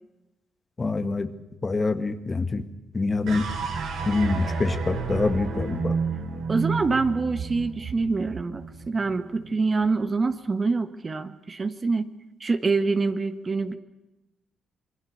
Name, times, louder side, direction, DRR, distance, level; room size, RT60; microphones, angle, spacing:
voice 1, 0.8-1.3 1.6-2.7 2.9-3.5 4.1-6.0, left 3 dB, 30° left, 9 dB, 1.8 m, -25 dB
sound 1, 3.3-9.6, right 4 dB, 80° right, 5.0 m, -31 dB
voice 2, 6.5-12.1 12.4-13.8, right 4 dB, 35° right, 9 dB, 1.5 m, -25 dB
27.5 x 22.0 x 6.5 m, 0.99 s
cardioid pair, 90°, 0 cm